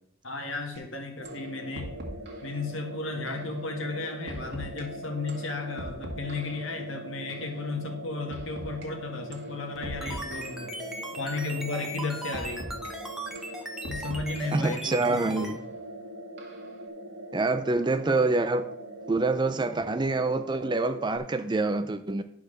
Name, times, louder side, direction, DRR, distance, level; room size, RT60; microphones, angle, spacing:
voice 1, 0.2-2.0 2.4-10.8 11.2-12.7 13.9-15.6, left 3 dB, 65° left, 3 dB, 1.8 m, -34 dB
sound 1, 0.7-0.8 1.2-1.4 1.7-2.5 3.3-3.5 4.3-4.8 5.3-6.7 7.3-7.5 8.3-8.9 9.3-9.5 9.8-10.7 11.3-11.6 12.3-12.9 13.3-14.7 15.4-15.5 16.4-16.7, equal, 55° right, 1.8 m, -41 dB
sound 2, 1.2-21.2, right 1 dB, 75° right, 1.5 m, -42 dB
sound 3, 9.8-15.5, right 1 dB, ahead, 1.1 m, -38 dB
voice 2, 14.5-15.6 17.3-18.7 19.1-22.2, right 3 dB, 20° right, 10 dB, 0.4 m, -26 dB
11.0 x 4.7 x 6.4 m, 0.74 s
head